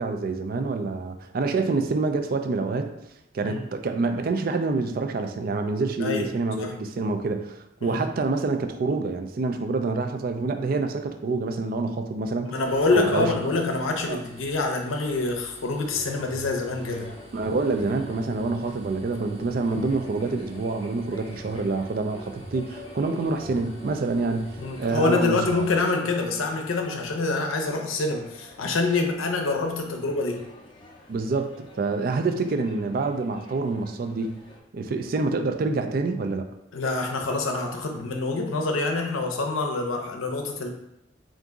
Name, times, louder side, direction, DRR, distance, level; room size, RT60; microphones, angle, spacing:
voice 1, 0.0-2.9 3.3-12.6 12.9-13.5 14.1-14.2 17.3-25.4 31.1-34.4 34.7-36.5, right 3 dB, 45° right, 7 dB, 0.3 m, -27 dB
voice 2, 12.5-17.1 24.6-30.4 36.7-40.7, left 3 dB, 90° left, 3 dB, 0.6 m, -26 dB
sound 1, 12.6-25.9, equal, 30° right, 0.9 m, -47 dB
sound 2, 15.9-34.6, left 1 dB, 25° left, 0.5 m, -45 dB
3.8 x 2.6 x 3.5 m, 0.87 s
head